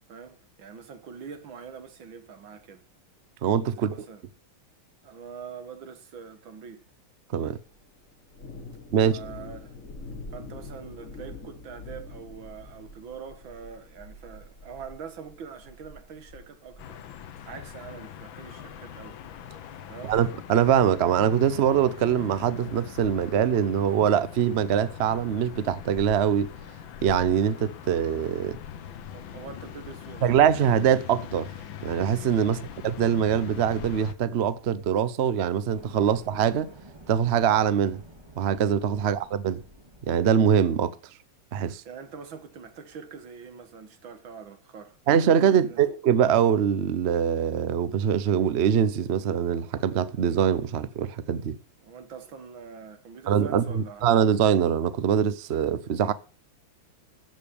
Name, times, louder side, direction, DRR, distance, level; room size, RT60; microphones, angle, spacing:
voice 1, 0.1-2.8 3.7-4.2 5.0-6.8 8.9-9.8 10.3-17.0 17.5-19.2 19.5-19.6 19.9-20.2 29.1-30.2 32.4-32.7 39.0-39.2 41.9-45.0 45.5-45.8 51.8-54.1, right 6 dB, 65° right, 2.3 m, -44 dB
voice 2, 3.4-3.9 7.3-7.6 8.9-9.2 20.1-26.5 27.0-28.6 30.2-31.5 31.8-32.6 32.8-36.7 37.1-38.0 38.4-39.6 40.1-40.9 41.5-41.8 45.1-51.6 53.3-56.1, right 8 dB, 85° right, 0.5 m, -23 dB
Thunder, 7.5-20.2, left 2 dB, 40° left, 3.6 m, -46 dB
sound 1, 16.8-34.1, left 9 dB, 70° left, 1.6 m, -42 dB
Fire, 35.5-40.8, right 1 dB, 10° right, 2.5 m, -50 dB
14.0 x 5.2 x 8.6 m
omnidirectional pair, 2.3 m